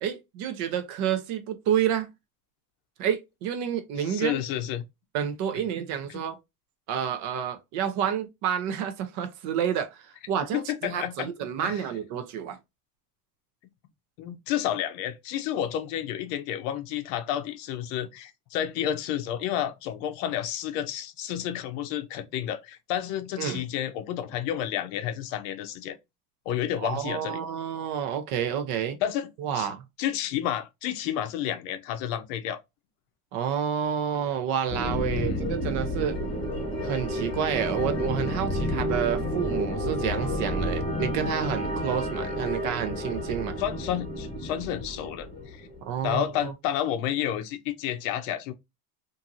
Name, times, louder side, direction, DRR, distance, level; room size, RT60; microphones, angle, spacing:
voice 1, 0.0-2.1 3.0-4.4 5.1-6.4 6.9-12.6 23.4-23.6 26.8-29.0 29.4-29.8 33.3-36.2 36.8-43.6 45.8-46.5, right 9 dB, 40° right, 0.5 m, -29 dB
voice 2, 4.1-4.8 6.1-6.2 10.5-11.3 11.6-11.8 14.2-26.0 26.5-27.4 29.0-29.3 29.5-29.7 30.0-32.6 35.1-35.4 43.6-45.7 46.0-48.5, left 11 dB, 55° left, 0.6 m, -30 dB
sound 1, 34.7-46.1, equal, 10° left, 1.2 m, -30 dB
2.8 x 2.6 x 2.4 m
supercardioid pair, 140°, 46 cm